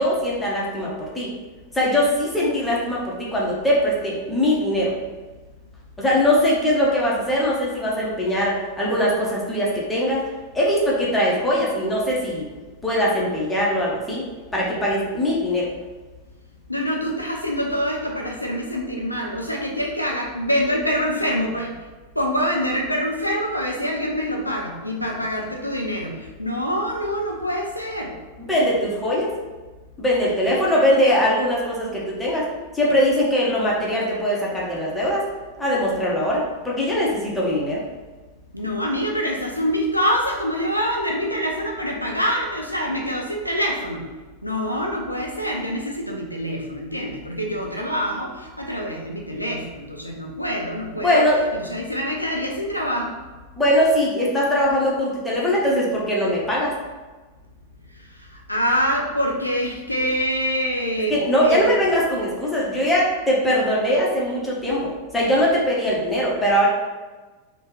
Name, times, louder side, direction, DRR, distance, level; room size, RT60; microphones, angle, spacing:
voice 1, 0.0-1.3 1.7-4.9 6.0-10.3 10.5-12.5 12.8-14.2 14.5-15.7 28.4-29.3 30.0-32.4 32.7-35.2 35.6-37.8 51.0-51.4 53.6-56.7 61.1-66.7, equal, 10° left, -5 dB, 0.8 m, -21 dB
voice 2, 16.7-21.7 22.2-28.1 38.5-44.0 44.4-51.2 51.5-53.2 58.5-61.8, equal, 85° left, 0 dB, 0.5 m, -25 dB
3.2 x 2.2 x 3.1 m, 1.3 s
figure-of-eight pair, 90°, 0 cm